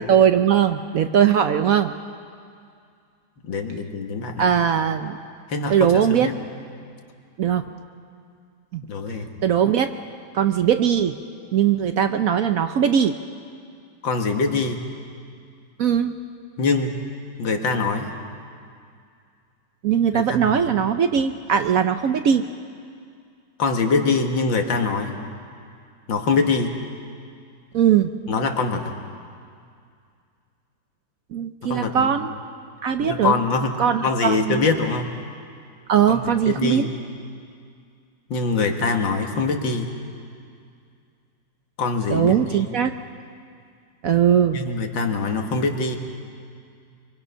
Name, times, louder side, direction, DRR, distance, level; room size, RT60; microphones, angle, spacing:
voice 1, 0.0-1.9 4.4-5.2 5.7-6.3 7.4-7.7 8.7-8.8 9.4-9.9 10.3-11.1 11.5-13.2 15.8-16.1 19.8-22.5 27.7-28.1 31.3-32.3 32.8-33.3 33.8-34.7 35.9-36.9 42.1-42.9 44.0-44.6, right 8 dB, 65° right, 8 dB, 0.9 m, -20 dB
voice 2, 3.4-4.5 5.5-6.3 8.9-9.3 14.0-14.8 16.6-16.9 17.4-18.1 20.1-20.6 23.6-25.1 26.1-26.8 28.3-28.9 31.6-32.1 33.0-33.8 34.0-35.1 36.1-36.9 38.3-39.9 41.8-42.6 44.5-46.0, left 4 dB, 90° left, 4 dB, 2.3 m, -23 dB
24.5 x 24.0 x 5.6 m, 2.3 s
omnidirectional pair, 2.0 m